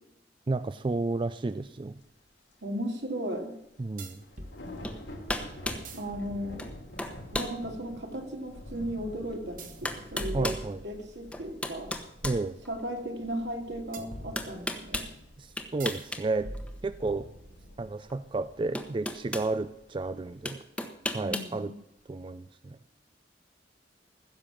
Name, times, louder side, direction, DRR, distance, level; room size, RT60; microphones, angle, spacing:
voice 1, 0.5-2.0 3.8-4.2 10.3-10.8 12.2-12.6 15.4-16.5 16.8-17.3 17.8-20.6 21.1-21.7 22.1-22.8, right 3 dB, 30° right, 13 dB, 0.4 m, -32 dB
sound 1, 1.5-1.6 2.0-2.1 3.5-3.6 3.9-20.5, left 1 dB, 90° left, 3.0 m, -49 dB
sound 2, 1.6-1.7 4.0-4.6 5.7-7.0 9.6-11.3 13.9-14.9 15.8-16.1 16.4-17.8, right 1 dB, 50° right, 1.5 m, -43 dB
voice 2, 2.6-3.5 6.0-6.6 7.3-10.5 10.8-11.9 12.7-15.0 21.2-21.7, equal, 75° right, 3 dB, 2.5 m, -36 dB
sound 3, 4.8-5.0 5.3-5.9 6.6-6.7 7.0-7.6 8.1-8.2 9.3-9.4 9.9-10.7 11.3-13.0 14.4-15.1 15.6-16.2 16.5-16.7 18.1-18.2 18.8-19.5 20.5-21.5, left 1 dB, 5° left, 1.0 m, -34 dB
15.5 x 6.9 x 7.5 m, 0.82 s
head